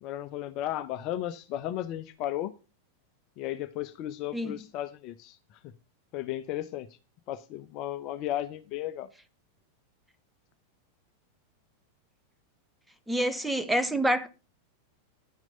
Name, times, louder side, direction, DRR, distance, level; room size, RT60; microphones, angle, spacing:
voice 1, 0.0-2.5 3.4-5.4 5.6-5.7 6.1-6.9 7.3-9.1, left 12 dB, 40° left, 0.7 m, -34 dB
voice 2, 4.3-4.6 13.1-14.3, right 1 dB, 5° right, 1.1 m, -27 dB
10.5 x 6.2 x 5.2 m
figure-of-eight pair, 90°, 0 cm